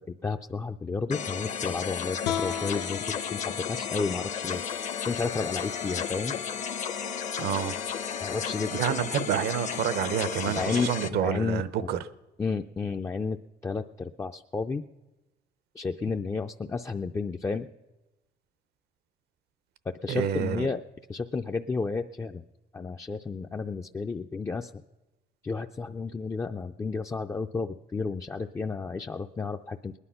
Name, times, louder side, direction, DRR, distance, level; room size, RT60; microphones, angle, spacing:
voice 1, 0.2-4.6 5.0-6.4 8.2-8.7 10.5-10.9 11.2-11.6 12.4-13.4 13.6-14.8 15.8-17.7 20.0-20.8 21.1-22.4 22.7-24.7 25.4-30.0, left 4 dB, 15° left, 4 dB, 0.4 m, -32 dB
sound 1, 1.1-11.1, left 7 dB, 45° left, 0.7 m, -33 dB
sound 2, 2.2-5.4, left 9 dB, 80° left, 0.8 m, -37 dB
voice 2, 7.4-7.8 8.7-12.0 20.1-20.7, right 9 dB, 70° right, 15 dB, 0.7 m, -28 dB
20.0 x 9.9 x 5.7 m, 1.0 s
cardioid pair, 110°, 17 cm